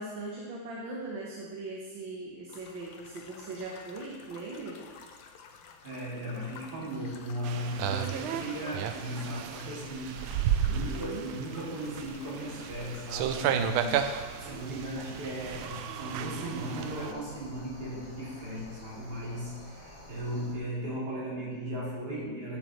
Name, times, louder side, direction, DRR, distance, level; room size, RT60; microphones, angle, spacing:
voice 1, 0.0-4.8 7.0-7.1 10.7-11.3, right 2 dB, 70° right, -3 dB, 1.8 m, -40 dB
sound 1, 2.5-13.7, left 5 dB, 75° left, 1.5 m, -52 dB
voice 2, 5.8-22.6, equal, 55° right, -7 dB, 3.2 m, -37 dB
sound 2, 7.4-17.1, right 9 dB, 85° right, 1.4 m, -33 dB
sound 3, 13.6-20.5, equal, 20° left, 1.1 m, -49 dB
12.0 x 7.4 x 3.1 m, 1.5 s
omnidirectional pair, 2.3 m